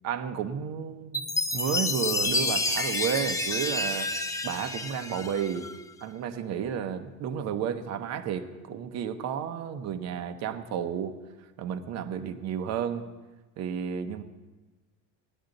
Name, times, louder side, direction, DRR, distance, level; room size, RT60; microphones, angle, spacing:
voice 1, 0.0-1.2 1.5-4.1 4.4-5.7 6.0-11.2 11.6-13.0 13.6-14.2, right 8 dB, 45° right, 8 dB, 0.9 m, -32 dB
Chime, 1.1-5.8, left 2 dB, 10° left, 0.5 m, -29 dB
16.5 x 11.0 x 3.9 m, 1.2 s
cardioid pair, 155°, 38 cm